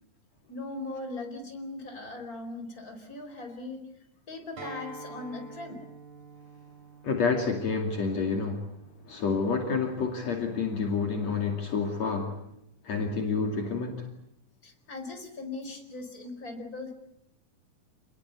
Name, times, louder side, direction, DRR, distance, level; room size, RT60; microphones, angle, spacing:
voice 1, 0.5-3.9 4.3-5.8 14.6-16.9, left 2 dB, 25° left, 4 dB, 5.0 m, -39 dB
Acoustic guitar, 4.6-9.8, right 3 dB, 70° right, 5.6 m, -48 dB
voice 2, 7.0-8.7 9.1-12.4 12.8-14.1, left 4 dB, 60° left, 3 dB, 3.6 m, -29 dB
28.5 x 21.0 x 8.3 m, 0.76 s
omnidirectional pair, 3.5 m